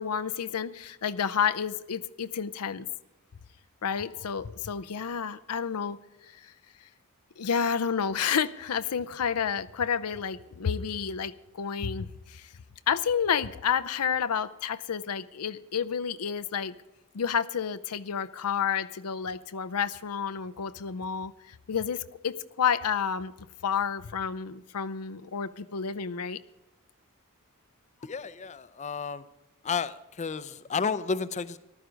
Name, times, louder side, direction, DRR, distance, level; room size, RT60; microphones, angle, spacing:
voice 1, 0.0-2.9 3.8-6.0 6.4-6.5 7.4-12.5 12.9-16.7 17.1-23.3 23.6-26.4, left 7 dB, 85° left, 0.6 m, -30 dB
voice 2, 28.0-29.2 29.6-31.6, left 5 dB, 30° left, 0.5 m, -32 dB
14.5 x 12.5 x 5.1 m
head